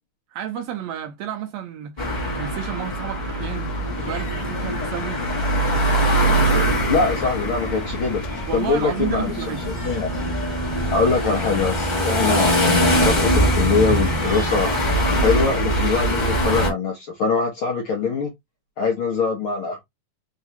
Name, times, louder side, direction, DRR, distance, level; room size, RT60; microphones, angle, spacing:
voice 1, 0.3-2.0 2.3-5.2 8.5-9.8, right 9 dB, 80° right, 1.6 m, -31 dB
sound 1, 2.0-16.7, right 1 dB, 30° left, 0.8 m, -22 dB
sound 2, 3.4-8.6, left 10 dB, 80° left, 1.5 m, -38 dB
voice 2, 6.9-8.2 8.5-9.3 9.7-10.1 10.9-14.7 15.2-18.3 18.8-19.8, left 4 dB, 65° left, 1.3 m, -23 dB
4.7 x 2.9 x 2.8 m
omnidirectional pair, 3.5 m